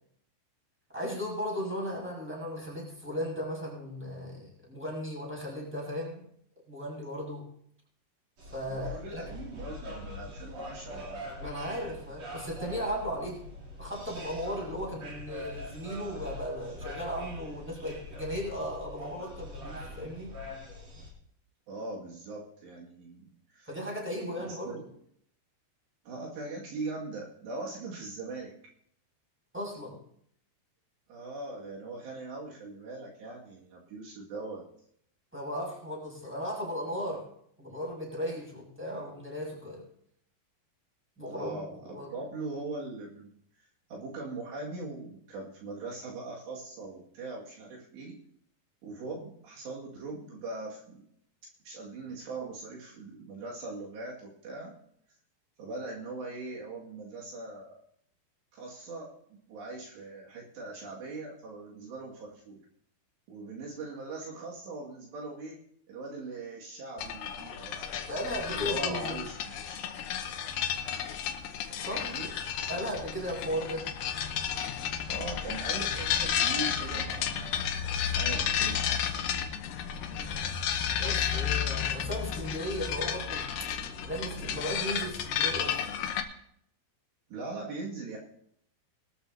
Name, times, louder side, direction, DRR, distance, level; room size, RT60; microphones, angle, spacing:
voice 1, 0.9-6.2 6.7-7.5 8.5-9.2 11.4-13.5 13.8-20.3 23.7-24.7 29.5-30.0 35.3-37.3 37.6-39.8 41.2-42.1 68.1-69.2 71.8-72.1 72.7-73.9 80.1-80.4 81.0-83.5 84.0-85.9, equal, ahead, -3 dB, 6.4 m, -36 dB
sound 1, 8.4-21.1, left 1 dB, 40° right, 4.2 m, -43 dB
voice 2, 8.7-11.3 21.7-23.7 24.4-24.9 26.1-28.5 31.1-34.6 41.3-43.3 43.9-48.2 48.8-51.1 51.6-54.7 55.6-57.8 58.5-62.6 63.3-65.6 65.9-69.9 72.0-72.3 75.0-77.7 78.1-78.9 87.3-88.2, right 3 dB, 70° right, -3 dB, 4.3 m, -41 dB
sound 2, 67.0-86.2, left 8 dB, 75° left, 2.2 m, -32 dB
22.0 x 13.0 x 2.8 m, 0.69 s
omnidirectional pair, 5.2 m